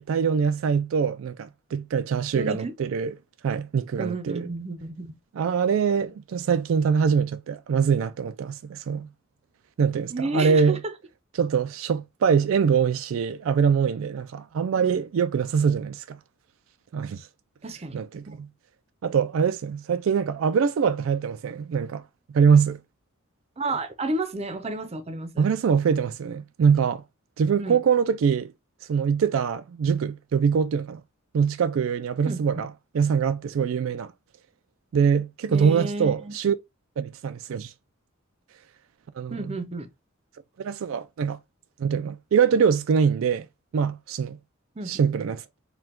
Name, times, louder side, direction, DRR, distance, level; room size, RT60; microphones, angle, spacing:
voice 1, 0.0-3.1 3.4-4.5 5.3-9.1 9.8-10.8 11.3-16.2 16.9-17.3 17.9-18.5 19.0-22.0 22.3-22.8 25.4-27.0 27.4-28.5 28.9-31.0 31.3-34.1 34.9-36.6 37.0-37.7 39.2-39.5 40.6-41.4 41.8-43.5 43.7-44.4 44.9-45.4, right 6 dB, 70° right, 0.3 m, -23 dB
voice 2, 2.3-2.7 4.0-5.1 10.1-10.9 14.8-14.9 17.6-18.4 23.6-25.5 27.6-27.8 32.3-32.6 35.5-36.4 39.3-39.9 44.8-45.0, right 2 dB, 30° right, 0.6 m, -31 dB
4.6 x 2.3 x 3.7 m
head